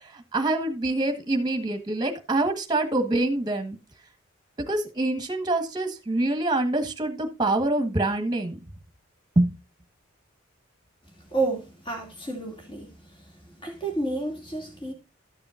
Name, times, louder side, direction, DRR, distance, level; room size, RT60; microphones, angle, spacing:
voice 1, 0.0-3.8 4.7-8.6 9.3-9.5, right 2 dB, 20° right, 1.5 m, -25 dB
voice 2, 11.3-12.9 13.6-14.9, right 2 dB, 25° left, 2.7 m, -30 dB
13.0 x 7.0 x 2.6 m
head